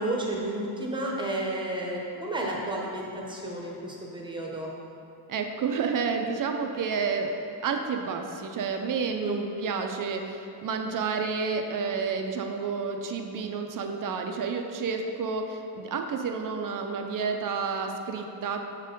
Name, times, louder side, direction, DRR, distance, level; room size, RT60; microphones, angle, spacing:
voice 1, 0.0-4.7 9.2-9.5, right 1 dB, 10° right, -2 dB, 0.9 m, -32 dB
voice 2, 5.3-7.3 7.6-18.6, right 5 dB, 45° right, 4 dB, 0.5 m, -30 dB
7.1 x 4.4 x 5.2 m, 2.6 s
cardioid pair, 145°, 47 cm